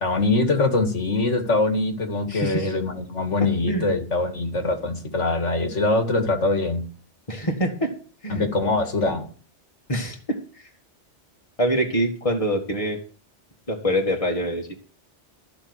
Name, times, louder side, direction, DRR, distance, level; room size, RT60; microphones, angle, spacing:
voice 1, 0.0-6.8 8.3-9.3, left 2 dB, 80° left, 2.4 m, -23 dB
voice 2, 2.3-2.7 3.7-3.9 7.3-7.9 8.2-8.5 9.9-10.4 11.6-13.0 13.7-14.7, equal, 30° left, 2.2 m, -25 dB
14.0 x 6.0 x 8.1 m
omnidirectional pair, 1.2 m